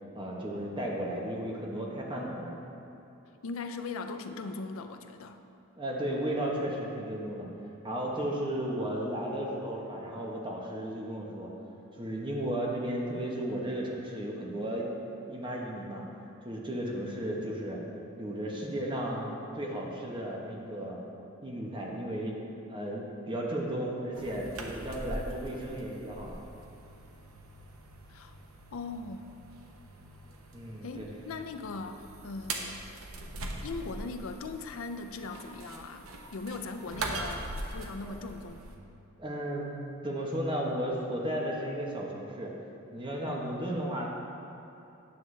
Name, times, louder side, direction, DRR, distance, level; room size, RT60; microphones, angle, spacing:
voice 1, 0.1-2.5 5.8-7.5 7.8-11.5 12.0-14.9 15.3-16.0 16.4-17.8 18.2-21.0 21.4-22.4 22.7-26.4 30.5-31.1 38.1-38.2 39.2-39.7 40.0-42.5 42.9-44.1, right 1 dB, 25° right, -2 dB, 0.9 m, -34 dB
voice 2, 3.4-5.4 28.1-28.4 28.7-29.3 30.8-32.9 33.6-36.1 36.3-37.5 37.7-38.6, left 3 dB, 70° left, 8 dB, 0.4 m, -39 dB
sound 1, 24.1-38.8, right 2 dB, 85° right, 0.7 m, -42 dB
9.6 x 6.4 x 3.2 m, 2.9 s
head